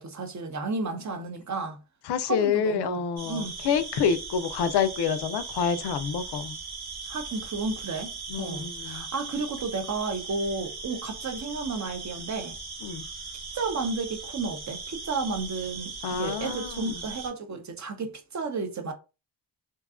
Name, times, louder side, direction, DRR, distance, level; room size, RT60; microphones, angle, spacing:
voice 1, 0.0-1.8 2.2-3.6 7.1-12.6 13.5-18.9, right 3 dB, 40° right, 0.7 m, -32 dB
voice 2, 2.1-6.6 8.3-9.1 12.8-13.0 16.0-17.0, left 7 dB, 65° left, 0.5 m, -27 dB
sound 1, 3.2-17.3, right 4 dB, 55° right, 1.0 m, -39 dB
2.6 x 2.3 x 2.4 m
cardioid pair, 50°, 45 cm